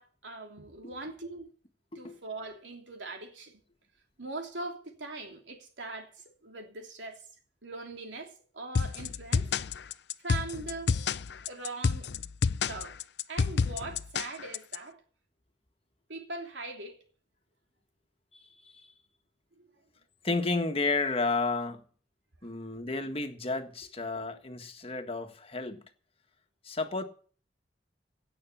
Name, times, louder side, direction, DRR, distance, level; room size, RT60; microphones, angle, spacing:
voice 1, 0.0-1.5 1.9-3.6 4.2-7.2 7.6-9.5 10.2-11.0 11.5-12.1 12.6-13.0 13.3-15.0 16.1-17.0 19.6-19.7, right 2 dB, 90° right, 3.0 m, -41 dB
sound 1, 8.8-14.8, left 5 dB, 65° left, 0.5 m, -29 dB
voice 2, 18.3-18.9 20.2-21.8 22.4-25.8 26.6-27.0, left 3 dB, 30° left, 1.6 m, -32 dB
17.0 x 6.8 x 7.2 m
head